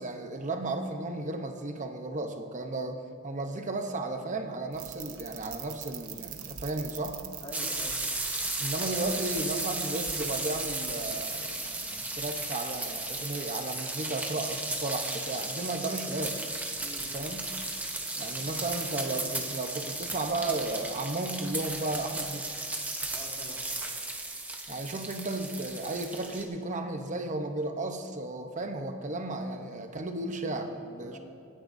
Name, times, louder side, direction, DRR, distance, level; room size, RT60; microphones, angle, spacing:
voice 1, 0.0-7.2 8.6-16.4 17.1-17.5 18.1-22.5 24.7-31.2, right 2 dB, 35° right, 5 dB, 0.9 m, -34 dB
sound 1, 4.7-11.1, right 10 dB, 70° right, 0.9 m, -43 dB
voice 2, 7.4-8.0 16.8-17.3 23.1-23.7 31.0-31.2, left 1 dB, 25° left, -3 dB, 2.0 m, -45 dB
sound 2, 7.5-26.4, right 2 dB, 5° right, 0.9 m, -35 dB
25.0 x 10.0 x 2.7 m, 2.4 s
head